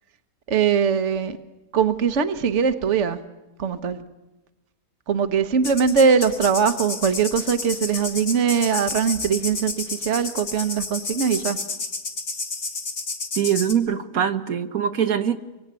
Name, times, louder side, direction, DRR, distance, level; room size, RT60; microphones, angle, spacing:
voice 1, 0.5-1.4 1.7-3.2 3.6-4.0 5.1-11.6, right 6 dB, 55° right, 10 dB, 1.4 m, -21 dB
sound 1, 5.6-13.7, left 3 dB, 70° left, 2.5 m, -31 dB
voice 2, 13.3-15.4, right 9 dB, 75° right, 8 dB, 1.6 m, -23 dB
25.0 x 23.0 x 9.6 m, 1.0 s
omnidirectional pair, 1.5 m